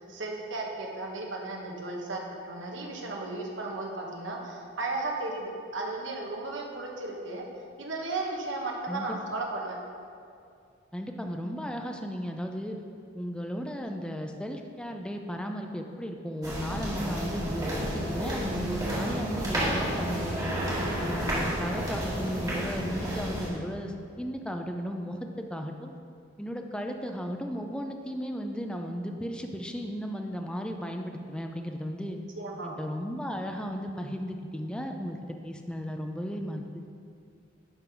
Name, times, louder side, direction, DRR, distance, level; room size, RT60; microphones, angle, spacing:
voice 1, 0.0-7.5 7.8-9.8 32.4-32.7, right 2 dB, 70° right, 0 dB, 1.1 m, -35 dB
voice 2, 10.9-12.8 13.1-20.4 21.0-26.0 26.4-32.2 32.6-35.2 35.4-36.9, equal, 5° left, 4 dB, 0.4 m, -35 dB
sound 1, 16.4-23.5, equal, 20° right, 1.8 m, -31 dB
11.0 x 3.8 x 4.5 m, 2.4 s
head